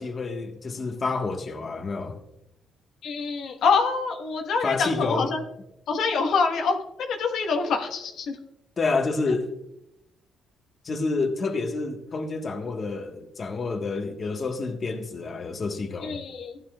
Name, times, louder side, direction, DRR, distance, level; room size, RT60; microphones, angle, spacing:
voice 1, 0.0-2.2 4.6-5.4 8.8-9.5 10.8-16.2, left 3 dB, 40° left, 1.3 m, -28 dB
voice 2, 3.0-5.4 5.9-6.8 7.1-8.4 16.0-16.5, left 4 dB, 75° left, 1.3 m, -25 dB
15.5 x 11.0 x 2.4 m
cardioid pair, 90°, 0 cm